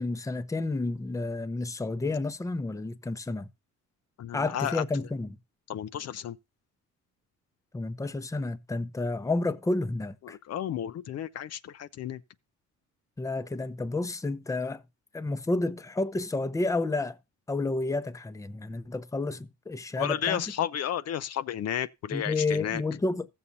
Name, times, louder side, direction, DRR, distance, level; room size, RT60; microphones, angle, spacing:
voice 1, 0.0-3.5 4.3-5.3 7.7-10.4 13.2-14.8 15.1-17.2 17.5-20.4 22.1-23.3, left 2 dB, 10° left, 0.6 m, -30 dB
voice 2, 4.2-4.8 5.7-6.4 10.2-12.2 20.0-22.8, left 10 dB, 60° left, 0.5 m, -32 dB
15.0 x 7.0 x 2.7 m
cardioid pair, 90°, 30 cm